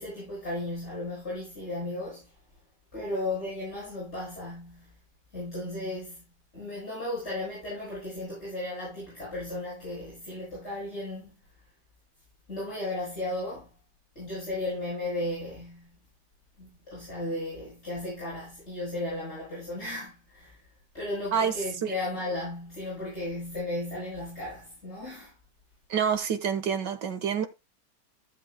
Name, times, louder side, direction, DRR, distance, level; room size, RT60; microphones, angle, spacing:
voice 1, 0.0-2.3 2.9-5.0 5.3-6.3 6.5-11.3 12.5-13.7 14.2-16.0 16.6-20.6 20.9-25.3, left 1 dB, 40° left, 7.1 m, -35 dB
voice 2, 25.9-27.5, right 7 dB, 90° right, 2.0 m, -27 dB
15.0 x 8.1 x 2.2 m
omnidirectional pair, 1.8 m